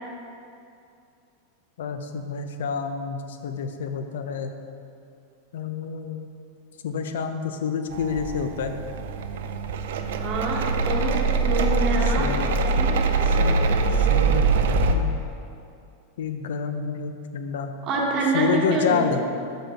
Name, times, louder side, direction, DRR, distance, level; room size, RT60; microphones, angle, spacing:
voice 1, 1.8-4.5 5.5-6.3 6.8-8.8 12.0-12.5 13.2-14.5 14.9-15.1 16.2-17.7 18.3-19.2, left 6 dB, 85° left, 7 dB, 0.6 m, -28 dB
sound 1, 7.9-14.9, right 4 dB, 75° right, 0.4 m, -23 dB
voice 2, 10.2-12.3 12.6-13.0 17.8-19.2, right 2 dB, 30° right, -3 dB, 1.0 m, -26 dB
6.0 x 5.2 x 5.0 m, 2.5 s
supercardioid pair, 160°, 0 cm